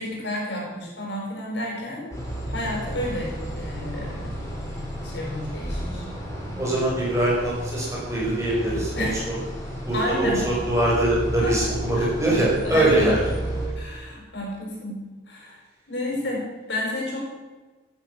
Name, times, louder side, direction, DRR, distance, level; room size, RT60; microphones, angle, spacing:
voice 1, 0.0-2.1 2.5-4.3 5.0-6.0 9.0-9.2 9.9-10.6 11.4-11.6 11.9-12.1 12.6-13.1 13.7-15.6 15.9-17.2, left 1 dB, 65° left, -2 dB, 6.0 m, -31 dB
sound 1, 2.1-13.7, right 1 dB, 15° left, 4.7 m, -32 dB
voice 2, 6.5-8.9 9.9-13.2, right 1 dB, 15° right, -5 dB, 5.8 m, -22 dB
15.5 x 10.5 x 6.4 m, 1.3 s
head